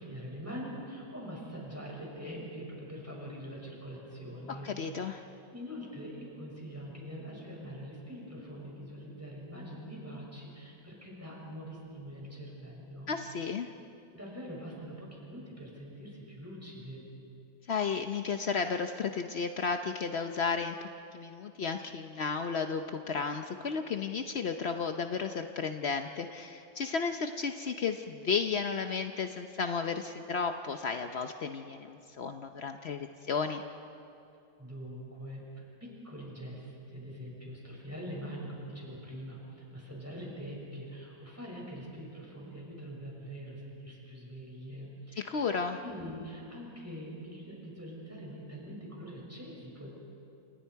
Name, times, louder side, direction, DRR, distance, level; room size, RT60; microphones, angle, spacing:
voice 1, 0.0-13.1 13.4-13.5 14.1-17.0 34.6-49.9, equal, 5° right, -3 dB, 6.1 m, -44 dB
voice 2, 4.5-5.2 13.1-13.7 17.7-20.9 21.1-33.6 45.2-45.8, left 5 dB, 70° left, 6 dB, 0.6 m, -33 dB
29.0 x 28.5 x 4.7 m, 2.6 s
omnidirectional pair, 2.2 m